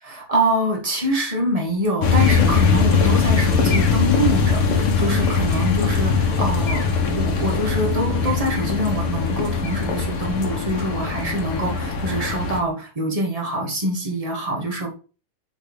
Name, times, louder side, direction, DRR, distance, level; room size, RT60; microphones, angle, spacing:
voice 1, 0.0-14.9, right 1 dB, 15° right, -1 dB, 2.3 m, -25 dB
sound 1, 2.0-12.6, left 5 dB, 90° left, 2.4 m, -21 dB
6.6 x 6.1 x 4.0 m, 0.34 s
omnidirectional pair, 2.3 m